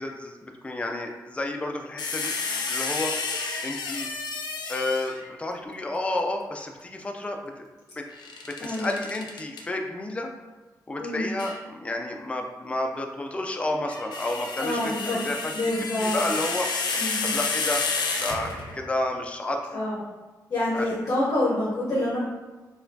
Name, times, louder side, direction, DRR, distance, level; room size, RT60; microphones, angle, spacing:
voice 1, 0.0-2.4 2.7-3.1 3.6-4.1 4.7-7.6 8.0-8.1 8.5-10.3 10.9-15.7 16.0-16.7 17.2-17.9 18.1-19.7 20.7-20.9, left 1 dB, 15° left, 3 dB, 0.4 m, -31 dB
sound 1, 2.0-5.3 8.2-9.6 11.4-11.6 13.7-18.8, left 4 dB, 80° left, 0.4 m, -30 dB
voice 2, 8.6-8.9 11.0-11.3 14.6-15.2 15.5-16.3 17.0-17.3 19.7-20.0 20.5-22.2, left 1 dB, 45° left, -6 dB, 0.9 m, -27 dB
4.0 x 2.3 x 2.7 m, 1.3 s
cardioid pair, 90°, 7 cm